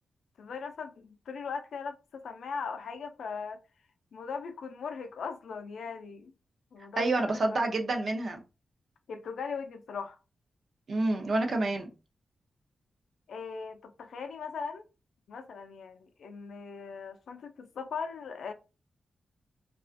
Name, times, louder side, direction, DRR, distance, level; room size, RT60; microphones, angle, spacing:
voice 1, 0.4-3.6 4.1-6.3 6.7-7.7 9.1-10.2 13.3-14.8 15.3-18.5, left 5 dB, 85° left, 0.4 m, -39 dB
voice 2, 7.0-8.4 10.9-11.9, right 2 dB, 55° right, 0.6 m, -28 dB
2.4 x 2.3 x 2.5 m
cardioid pair, 95°, 0 cm